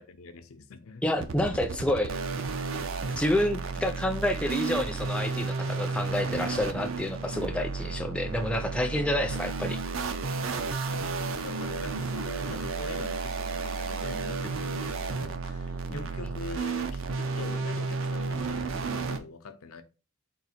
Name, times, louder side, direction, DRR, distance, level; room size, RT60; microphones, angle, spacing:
voice 1, 0.0-1.0 10.9-19.8, left 3 dB, 85° left, 0.5 m, -44 dB
voice 2, 1.0-2.1 3.2-9.8, left 1 dB, 5° left, 0.3 m, -28 dB
sound 1, 1.2-19.2, right 4 dB, 75° right, 0.5 m, -32 dB
3.9 x 2.4 x 4.2 m
head